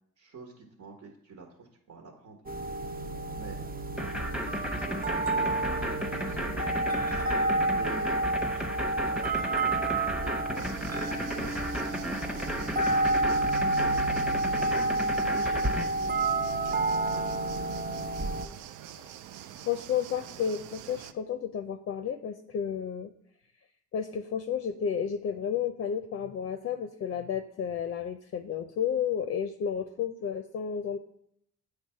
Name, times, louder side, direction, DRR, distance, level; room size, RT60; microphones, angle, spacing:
voice 1, 0.2-2.4 3.3-3.6 4.5-8.2 8.5-14.7 15.2-17.8, right 4 dB, 65° right, 1 dB, 1.4 m, -47 dB
Big wind chime, 2.5-18.5, right 2 dB, 30° right, 0.6 m, -30 dB
sound 1, 4.0-15.8, equal, 5° right, 0.9 m, -34 dB
sound 2, 10.5-21.1, right 10 dB, 85° right, 0.5 m, -46 dB
voice 2, 19.6-23.1 23.9-31.0, left 8 dB, 45° left, 9 dB, 0.5 m, -32 dB
8.0 x 3.4 x 5.6 m, 0.73 s
cardioid pair, 90°, 30 cm